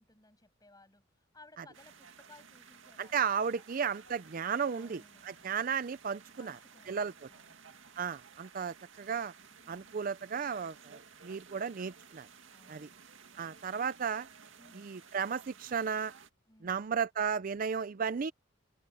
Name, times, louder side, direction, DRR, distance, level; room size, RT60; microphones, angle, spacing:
voice 1, 0.0-3.6 4.7-5.5 6.4-7.7 9.5-10.0 11.5-11.9 12.5-13.0 14.6-14.9 16.5-16.8, left 2 dB, 20° left, 7.3 m, -61 dB
sound 1, 1.7-16.3, right 6 dB, 70° right, 2.2 m, -56 dB
voice 2, 3.0-6.6 6.9-7.1 8.0-9.3 9.7-12.3 12.7-12.9 13.4-14.3 14.7-16.1 16.6-18.3, right 6 dB, 45° right, 0.4 m, -34 dB
open air
head